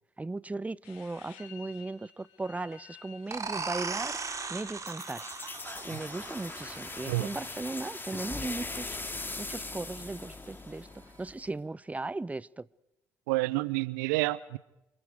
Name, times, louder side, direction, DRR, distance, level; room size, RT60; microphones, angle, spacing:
voice 1, 0.2-4.2 4.5-5.2 5.8-9.0 9.4-10.9 11.2-12.7, right 2 dB, 15° right, 0.8 m, -37 dB
sound 1, 0.8-7.6, left 10 dB, 70° left, 2.8 m, -55 dB
sound 2, 3.3-8.7, right 4 dB, 35° right, 3.5 m, -39 dB
sound 3, 4.9-11.5, left 2 dB, 20° left, 3.1 m, -40 dB
voice 2, 13.3-14.6, right 21 dB, 75° right, 0.8 m, -29 dB
28.0 x 27.5 x 4.9 m
figure-of-eight pair, 45°, 10 cm